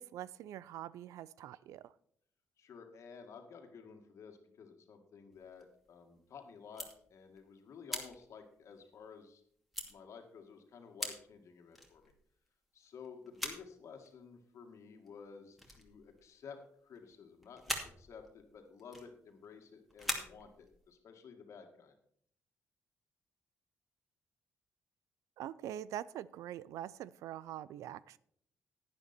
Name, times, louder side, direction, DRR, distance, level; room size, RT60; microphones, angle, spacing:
voice 1, 0.0-1.9 25.4-28.2, right 11 dB, 85° right, 20 dB, 0.4 m, -44 dB
voice 2, 2.6-9.4 9.9-12.1 12.7-16.6 16.8-21.9, left 6 dB, 65° left, 5 dB, 2.0 m, -53 dB
sound 1, 5.3-6.2 6.6-7.5 7.9-9.3 9.7-9.9 10.6-10.7 11.0-11.3 11.7-12.5 13.0-13.8 14.0-14.4 15.1-15.3 15.5-16.6 16.9-17.2 17.4-19.6 19.9-20.9, equal, ahead, 2.5 m, -43 dB
10.5 x 9.8 x 4.4 m, 0.65 s
cardioid pair, 75°, 5 cm